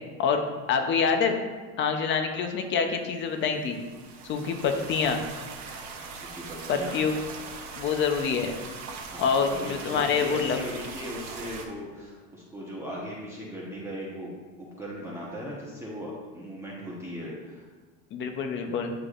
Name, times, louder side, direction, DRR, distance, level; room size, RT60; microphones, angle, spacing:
voice 1, 0.7-1.4 1.8-3.8 4.2-5.2 6.7-7.1 7.8-8.5 9.2-10.6 18.1-18.9, left 6 dB, 30° left, 5 dB, 0.7 m, -26 dB
sound 1, 3.3-11.7, right 4 dB, 45° right, 1.1 m, -41 dB
voice 2, 5.8-7.0 9.1-14.3 14.6-17.7, equal, 5° right, -6 dB, 1.0 m, -38 dB
9.6 x 4.7 x 2.5 m, 1.4 s
supercardioid pair, 150°, 39 cm